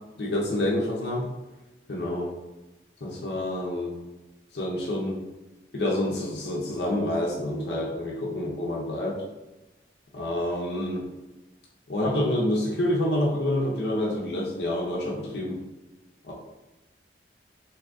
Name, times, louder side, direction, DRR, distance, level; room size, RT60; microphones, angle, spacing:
voice 1, 0.2-1.3 1.9-2.3 3.0-4.0 4.5-5.2 5.7-9.2 10.1-11.1 11.9-15.6 16.2-16.3, left 1 dB, 70° left, -3 dB, 0.6 m, -27 dB
3.5 x 2.7 x 2.5 m, 1.0 s
head